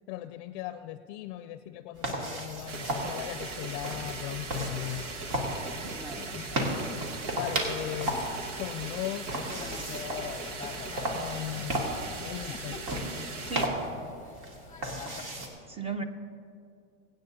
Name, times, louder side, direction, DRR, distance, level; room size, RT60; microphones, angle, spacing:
voice 1, 0.1-5.1 6.2-6.9 7.3-9.4 11.0-11.9 12.2-12.8, left 14 dB, 55° left, 12 dB, 0.5 m, -38 dB
sound 1, 2.0-15.5, right 1 dB, 55° right, 2.6 m, -35 dB
sound 2, 2.7-13.7, right 3 dB, 85° right, 1.5 m, -39 dB
voice 2, 5.8-6.4 12.7-12.8 13.4-13.7 15.7-16.0, right 4 dB, 15° right, 9 dB, 0.8 m, -37 dB
Thunder / Rain, 6.3-15.2, left 7 dB, 20° left, 0.8 m, -46 dB
24.0 x 9.2 x 2.8 m, 2.4 s
supercardioid pair, 115°, 36 cm